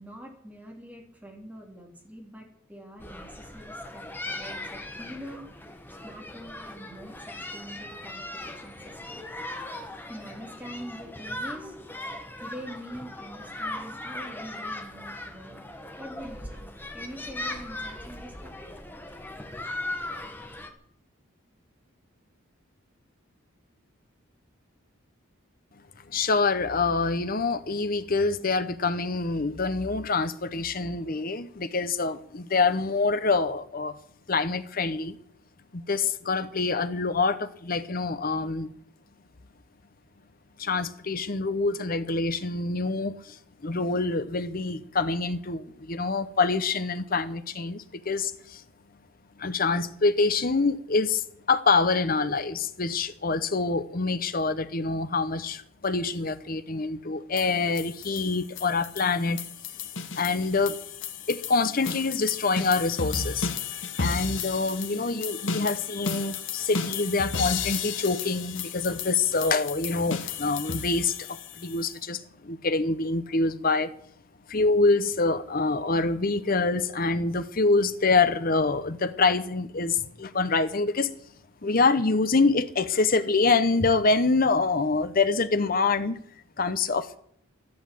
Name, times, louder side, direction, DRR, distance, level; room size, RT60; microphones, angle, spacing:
voice 1, 0.0-5.5 6.0-9.2 10.1-11.8 12.4-18.7, equal, 5° right, 3.3 m, -44 dB
sound 1, 3.0-20.7, left 1 dB, 10° left, 1.3 m, -39 dB
voice 2, 26.1-33.9 34.3-35.2 35.7-38.7 40.6-43.4 43.6-48.6 49.4-59.4 60.2-60.8 61.3-63.5 64.0-73.9 74.5-81.1 81.6-86.2 86.6-87.2, left 3 dB, 45° left, 0.9 m, -26 dB
sound 2, 57.4-71.9, left 5 dB, 60° left, 1.3 m, -34 dB
12.5 x 11.5 x 7.7 m
head